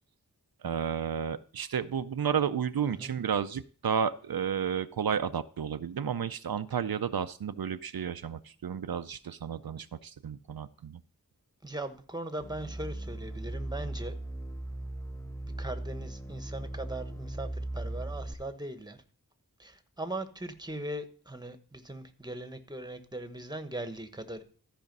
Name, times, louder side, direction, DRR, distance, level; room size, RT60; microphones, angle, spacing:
voice 1, 0.6-11.0, right 7 dB, 80° right, 11 dB, 0.5 m, -32 dB
voice 2, 11.6-14.1 15.6-19.0 19.6-24.4, right 1 dB, 10° right, 9 dB, 1.1 m, -39 dB
sound 1, 12.4-18.3, right 1 dB, 10° left, 0.7 m, -38 dB
13.5 x 5.1 x 5.3 m, 0.43 s
wide cardioid pair, 45°, 36 cm